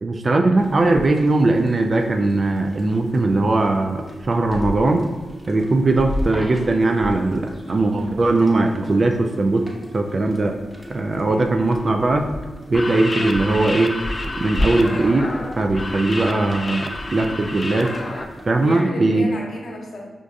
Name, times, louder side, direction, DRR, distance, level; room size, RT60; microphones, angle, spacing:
voice 1, 0.0-5.0 5.5-9.6 9.9-10.5 10.9-12.2 12.7-13.9 14.4-15.3 15.6-17.9 18.5-19.3, right 2 dB, 50° right, 3 dB, 0.3 m, -19 dB
sound 1, 0.6-18.8, equal, 20° right, 1.0 m, -34 dB
Coin (dropping), 6.2-7.1 13.2-13.3, left 1 dB, 10° left, 0.8 m, -37 dB
voice 2, 11.1-11.5 18.6-20.0, left 2 dB, 70° left, -1 dB, 0.7 m, -33 dB
sound 2, 12.6-18.2, left 2 dB, 40° left, 0.4 m, -30 dB
5.1 x 2.5 x 2.3 m, 1.2 s
cardioid pair, 50°, 0 cm